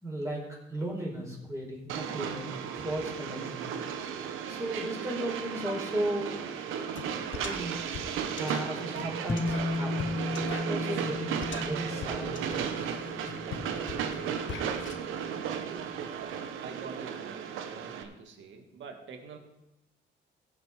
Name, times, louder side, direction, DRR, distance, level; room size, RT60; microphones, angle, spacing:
voice 1, 0.0-3.8 4.5-6.3 7.4-7.9 8.4-10.2 10.7-13.0, right 1 dB, 15° right, -4 dB, 4.5 m, -36 dB
Train, 1.9-18.0, right 7 dB, 90° right, 1.0 m, -35 dB
sound 1, 7.0-7.1 7.3-15.0, left 6 dB, 70° left, 1.3 m, -42 dB
sound 2, 9.3-15.9, left 2 dB, 15° left, 0.4 m, -36 dB
voice 2, 16.6-19.4, right 5 dB, 70° right, 4 dB, 1.9 m, -46 dB
16.5 x 6.3 x 4.9 m, 0.89 s
cardioid pair, 90°, 20 cm